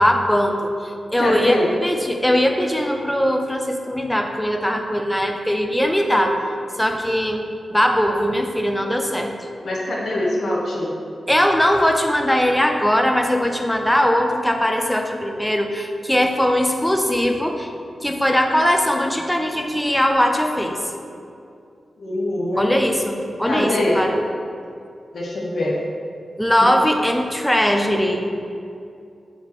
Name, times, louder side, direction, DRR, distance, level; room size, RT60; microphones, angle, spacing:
voice 1, 0.0-6.4 6.8-7.4 7.7-9.3 11.3-17.7 18.0-20.8 22.6-24.2 26.4-28.4, equal, 5° left, 3 dB, 0.6 m, -20 dB
voice 2, 1.2-1.7 9.6-10.9 22.0-22.7 23.4-24.0 25.1-25.8, left 1 dB, 60° left, -4 dB, 1.0 m, -23 dB
7.3 x 4.3 x 4.4 m, 2.5 s
wide cardioid pair, 115°, 0 cm